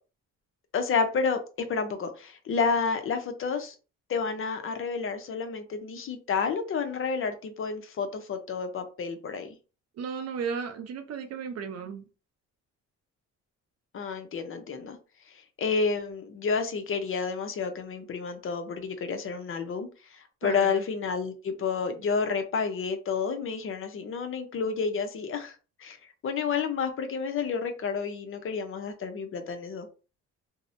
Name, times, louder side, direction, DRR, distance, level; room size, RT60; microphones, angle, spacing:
voice 1, 0.7-3.7 4.1-9.6 13.9-15.0 15.3-26.0 26.2-29.9, left 5 dB, 45° left, 0.5 m, -30 dB
voice 2, 10.0-12.0 20.4-20.8, right 6 dB, 55° right, 0.5 m, -35 dB
2.6 x 2.0 x 2.5 m
cardioid pair, 90°, 30 cm